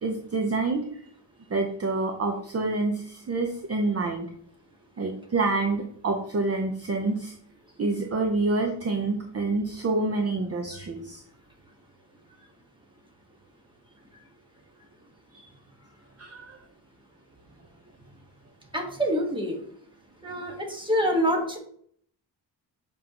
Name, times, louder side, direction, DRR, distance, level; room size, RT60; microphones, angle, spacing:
voice 1, 0.0-1.0 1.5-4.3 5.0-7.3 7.8-11.2 15.3-15.4 16.2-16.6, right 3 dB, 35° right, 3 dB, 0.8 m, -27 dB
voice 2, 18.7-19.6 20.2-21.6, equal, 10° right, 1 dB, 1.5 m, -26 dB
7.3 x 5.5 x 3.0 m, 0.62 s
wide cardioid pair, 130°, 45 cm